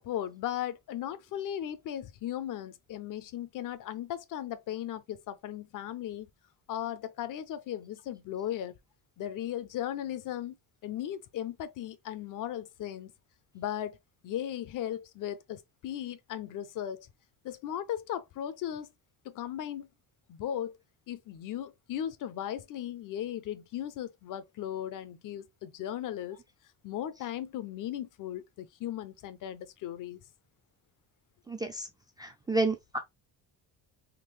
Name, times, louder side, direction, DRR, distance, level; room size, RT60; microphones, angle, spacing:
voice 1, 0.0-6.3 6.7-8.8 9.2-10.6 10.8-13.1 13.5-14.0 14.2-17.1 17.4-18.9 19.2-19.9 20.3-20.8 21.1-26.4 26.8-30.2, left 11 dB, 55° left, 0.6 m, -37 dB
voice 2, 31.5-31.9 32.2-33.0, right 3 dB, 10° right, 0.3 m, -30 dB
3.7 x 2.3 x 3.2 m
cardioid pair, 140°, 38 cm